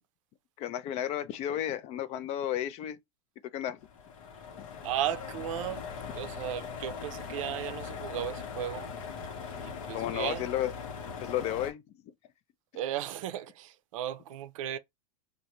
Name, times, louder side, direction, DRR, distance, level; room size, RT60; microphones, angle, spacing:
voice 1, 0.6-3.0 3.5-3.8 4.6-4.7 9.9-10.7 11.2-11.8, left 11 dB, 40° left, 0.4 m, -32 dB
sound 1, 3.8-11.7, left 6 dB, 75° left, 0.8 m, -40 dB
voice 2, 4.8-8.9 9.6-10.5 12.7-14.8, right 11 dB, 75° right, 0.5 m, -35 dB
2.6 x 2.1 x 2.9 m
hypercardioid pair, 115°, 17 cm